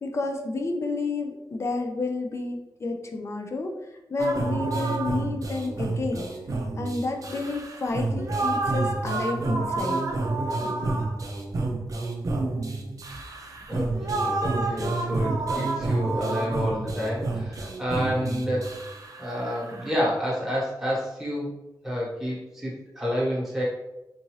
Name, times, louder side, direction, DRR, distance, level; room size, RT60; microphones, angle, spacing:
voice 1, 0.0-3.7 4.1-6.3 6.8-10.0 10.6-11.0, left 3 dB, 35° left, 3 dB, 0.4 m, -30 dB
sound 1, 4.2-19.9, right 2 dB, 50° right, 0.5 m, -29 dB
voice 2, 13.7-18.7 19.2-21.5 21.8-23.6, equal, 5° right, -7 dB, 1.2 m, -29 dB
3.6 x 2.7 x 3.1 m, 0.97 s
wide cardioid pair, 165°, 8 cm